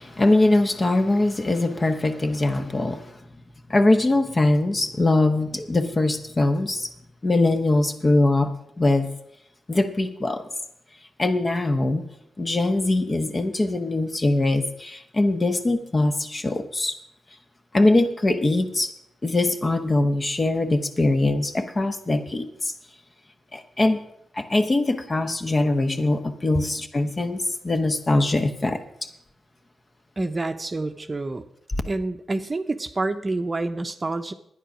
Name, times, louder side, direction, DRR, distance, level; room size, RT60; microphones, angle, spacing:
voice 1, 0.0-3.2 3.7-6.9 7.2-9.1 9.7-10.4 11.2-12.1 12.4-16.9 17.7-18.9 19.2-22.7 23.5-24.0 24.3-28.8, left 2 dB, 35° left, 1.2 m, -22 dB
voice 2, 30.2-31.5 31.9-34.3, right 2 dB, 30° right, 0.8 m, -28 dB
10.0 x 9.7 x 6.2 m
cardioid pair, 65°, 0 cm